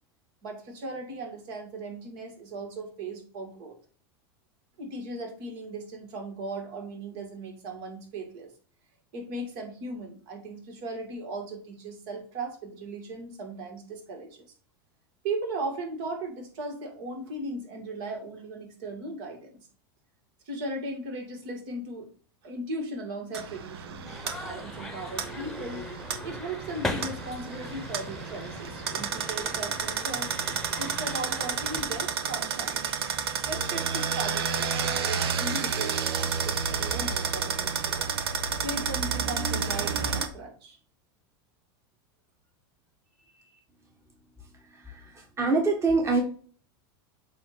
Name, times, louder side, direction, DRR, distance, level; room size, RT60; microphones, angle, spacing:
voice 1, 0.4-3.8 4.8-8.5 9.1-14.5 15.2-19.7 20.5-22.1 22.4-25.8 26.2-30.3 30.8-32.9 33.4-38.1 38.6-40.8 43.3-43.5, right 2 dB, 60° right, 1 dB, 2.4 m, -37 dB
sound 1, 23.3-40.3, right 6 dB, 85° right, 0.9 m, -31 dB
sound 2, 24.0-32.1, left 2 dB, 5° left, 1.1 m, -39 dB
voice 2, 44.7-46.2, right 3 dB, 20° right, 1 dB, 1.4 m, -25 dB
7.6 x 2.9 x 5.1 m, 0.44 s
hypercardioid pair, 110°, 13 cm